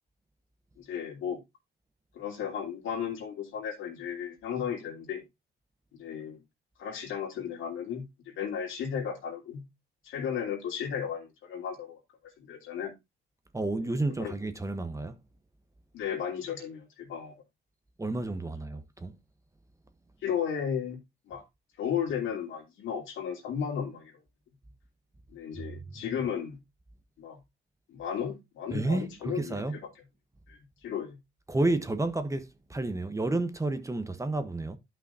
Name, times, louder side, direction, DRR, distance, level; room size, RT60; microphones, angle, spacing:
voice 1, 0.8-1.4 2.1-5.2 5.9-6.4 6.8-9.6 10.0-12.0 12.4-12.9 14.2-14.3 15.9-17.3 20.2-21.0 21.3-21.4 21.8-24.1 25.3-26.6 27.2-27.4 27.9-29.8 30.5-31.2, left 8 dB, 80° left, 2.8 m, -34 dB
voice 2, 13.5-15.2 18.0-19.2 25.5-26.2 28.7-29.8 31.5-34.8, right 2 dB, 15° right, 1.0 m, -31 dB
11.5 x 5.7 x 2.7 m
cardioid pair, 90°, 20 cm